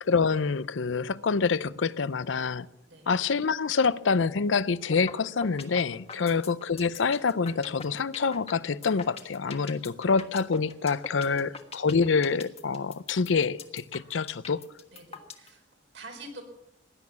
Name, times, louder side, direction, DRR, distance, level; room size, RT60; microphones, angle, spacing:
voice 1, 0.0-2.7 3.1-14.6, left 5 dB, 80° left, 0.6 m, -26 dB
sound 1, 4.9-5.1 5.4-15.5, left 5 dB, 35° left, 1.4 m, -41 dB
voice 2, 11.2-11.6 14.9-15.6 15.9-16.4, right 2 dB, 70° right, 4.1 m, -46 dB
17.0 x 11.0 x 7.1 m
head